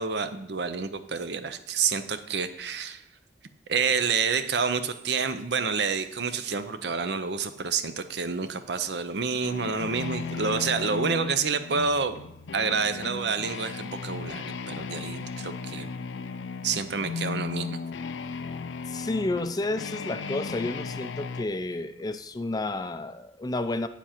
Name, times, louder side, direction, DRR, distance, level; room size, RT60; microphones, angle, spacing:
voice 1, 0.0-3.0 3.7-12.2 12.5-15.9 16.6-17.8, right 5 dB, 70° right, 10 dB, 0.6 m, -28 dB
sound 1, 9.4-21.5, left 5 dB, 90° left, 0.4 m, -36 dB
voice 2, 18.9-23.9, left 2 dB, 20° left, 11 dB, 0.4 m, -31 dB
9.0 x 7.1 x 4.3 m, 0.77 s
head